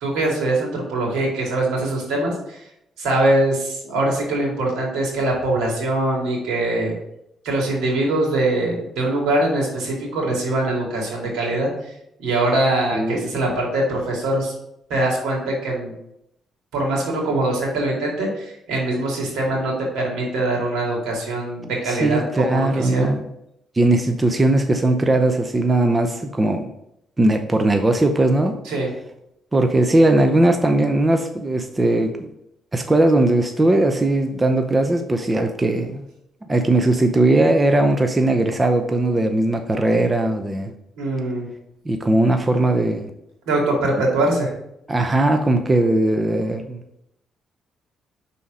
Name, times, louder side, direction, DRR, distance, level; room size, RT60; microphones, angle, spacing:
voice 1, 0.0-2.6 3.0-6.9 7.4-11.7 12.2-14.5 14.9-15.9 16.7-23.1 28.7-28.9 41.0-41.5 43.5-44.5, right 2 dB, 90° right, -1 dB, 2.3 m, -22 dB
voice 2, 12.9-13.4 21.9-23.2 23.8-26.7 27.2-28.6 29.5-32.3 32.7-36.0 36.5-40.7 41.9-43.1 44.9-46.8, right 2 dB, 20° right, 5 dB, 0.7 m, -19 dB
5.7 x 4.2 x 4.9 m, 0.79 s
cardioid pair, 90°, 0 cm